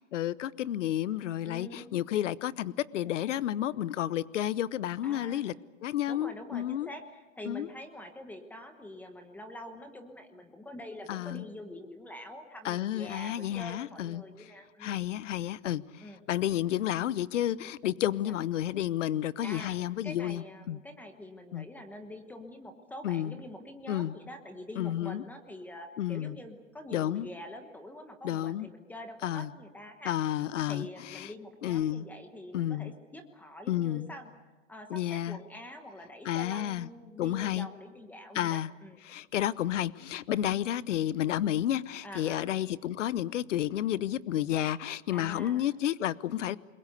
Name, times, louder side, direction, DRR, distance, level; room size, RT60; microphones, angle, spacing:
voice 1, 0.1-5.5 5.8-6.9 7.5-7.7 11.1-11.4 12.6-14.5 14.8-20.8 21.5-21.7 23.0-23.4 23.9-24.1 24.8-25.2 26.0-26.4 26.9-27.3 28.2-28.7 29.2-29.5 30.0-31.3 31.6-32.1 32.5-32.9 33.7-34.1 34.9-35.4 36.2-36.9 37.2-37.7 38.3-38.7 39.1-46.6, left 12 dB, 70° left, 0.9 m, -31 dB
voice 2, 1.4-1.9 5.0-5.4 6.1-15.0 16.0-16.2 18.2-18.3 19.4-19.8 20.0-30.1 30.7-34.3 34.7-39.0 40.3-40.5 42.0-42.5 45.1-45.7, left 1 dB, 5° left, 1.1 m, -45 dB
29.0 x 22.0 x 6.7 m
hypercardioid pair, 160°, 38 cm